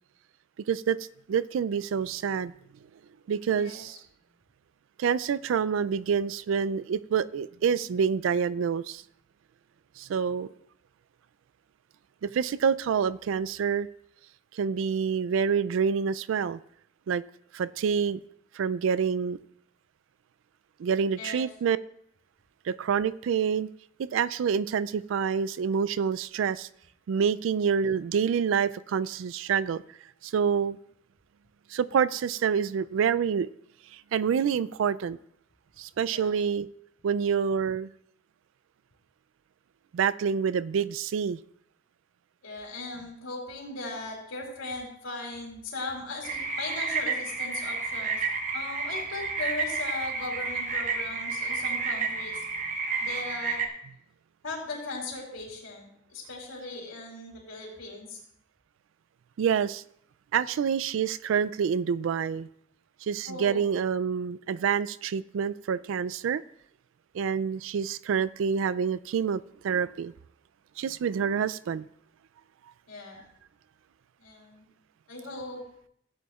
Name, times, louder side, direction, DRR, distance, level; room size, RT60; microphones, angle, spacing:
voice 1, 0.7-1.0 1.3-2.5 3.3-4.0 5.0-9.0 10.0-10.5 12.2-13.9 14.5-16.6 17.1-17.2 17.5-18.2 18.5-19.4 20.8-21.8 22.7-23.7 24.0-26.7 27.1-29.8 30.2-30.8 31.7-33.5 33.9-35.2 35.8-36.7 37.0-37.9 39.9-41.4 59.4-59.8 60.3-62.5 63.0-66.4 67.1-70.1 70.8-71.9, right 7 dB, 70° right, 17 dB, 0.3 m, -27 dB
voice 2, 42.4-48.3 48.5-52.4 53.0-53.6 54.4-58.2 63.2-63.6 72.9-73.2 74.2-74.7 75.1-75.6, left 2 dB, 85° left, -4 dB, 3.0 m, -38 dB
sound 1, 46.2-53.7, right 4 dB, 35° right, 0.8 m, -31 dB
16.0 x 8.3 x 2.4 m, 0.69 s
head